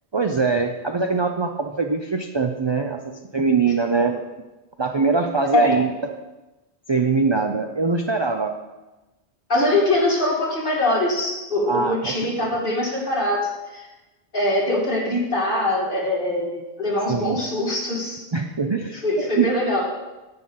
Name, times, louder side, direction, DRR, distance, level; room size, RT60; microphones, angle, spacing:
voice 1, 0.1-3.0 3.3-4.2 4.8-5.9 6.9-8.5 11.7-12.5 17.1-17.4 18.3-19.5, right 4 dB, 40° right, 4 dB, 0.4 m, -22 dB
voice 2, 9.5-13.9 14.3-18.2 19.0-19.8, left 1 dB, 50° left, -4 dB, 2.5 m, -22 dB
10.5 x 8.8 x 3.8 m, 1.1 s
omnidirectional pair, 1.1 m